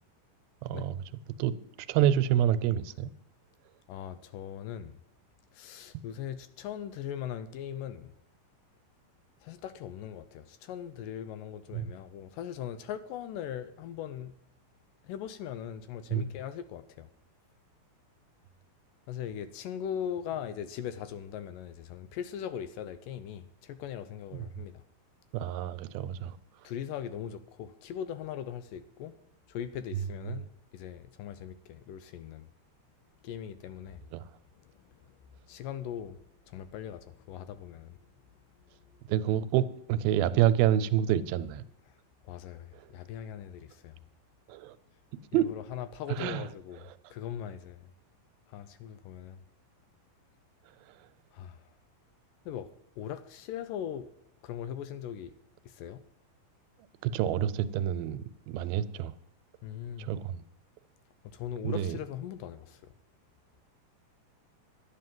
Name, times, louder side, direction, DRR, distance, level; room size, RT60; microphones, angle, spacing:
voice 1, 0.6-1.0 1.4-1.5 1.9-3.1 11.7-11.9 16.1-16.2 25.3-26.4 29.9-30.0 34.1-34.2 39.1-41.6 44.5-44.8 45.3-45.4 46.1-46.4 57.0-59.1 60.0-60.4 61.6-62.0, right 11 dB, 85° right, 2.5 m, -27 dB
voice 2, 3.9-5.0 5.5-8.1 9.4-14.4 15.0-17.1 19.1-24.8 26.6-29.2 29.5-32.5 33.2-34.1 34.6-34.7 35.4-36.2 36.5-38.0 41.9-42.0 42.2-44.0 45.3-47.9 48.5-49.4 51.3-51.7 52.5-52.7 53.0-54.1 54.4-55.3 55.6-56.0 59.6-60.1 61.2-62.9, left 9 dB, 80° left, 2.1 m, -40 dB
11.5 x 9.3 x 7.7 m
omnidirectional pair, 4.2 m